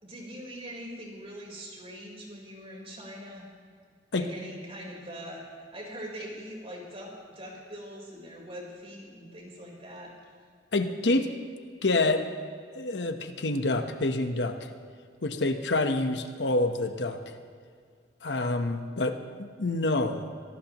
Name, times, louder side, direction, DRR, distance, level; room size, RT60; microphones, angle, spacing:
voice 1, 0.0-3.4 4.1-10.1, equal, 35° right, -2 dB, 4.2 m, -42 dB
voice 2, 10.7-11.3 11.8-12.2 12.7-14.7 15.2-17.2 18.2-20.3, left 2 dB, 70° left, 7 dB, 1.1 m, -27 dB
25.0 x 17.5 x 3.1 m, 2.2 s
head